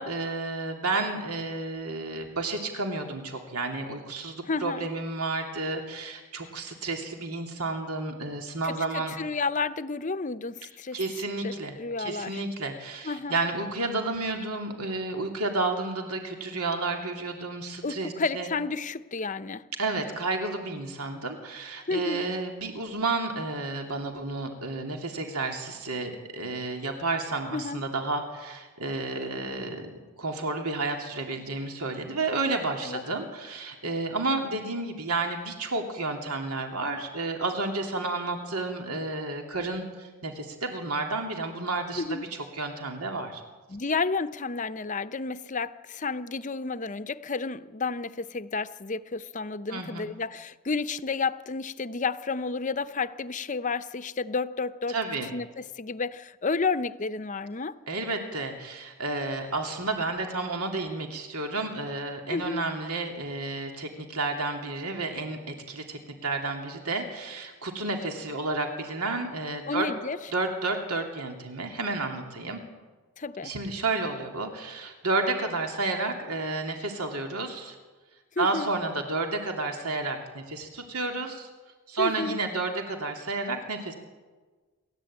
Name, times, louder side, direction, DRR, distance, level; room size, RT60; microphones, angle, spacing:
voice 1, 0.0-9.1 10.9-18.5 19.8-42.3 42.5-43.4 49.7-50.1 54.9-55.3 57.9-69.9 70.3-72.6 73.4-77.8 78.4-81.5 81.9-84.0, right 3 dB, 90° right, 2.9 m, -31 dB
voice 2, 4.4-4.9 8.6-11.0 11.4-12.4 13.0-13.4 17.8-19.6 21.9-22.3 27.5-27.8 32.8-33.0 42.0-42.2 43.7-55.0 55.3-57.7 62.3-62.6 69.7-70.2 73.2-73.5 78.4-78.7 82.0-82.4, left 4 dB, 35° left, 0.7 m, -31 dB
28.0 x 13.5 x 8.8 m
head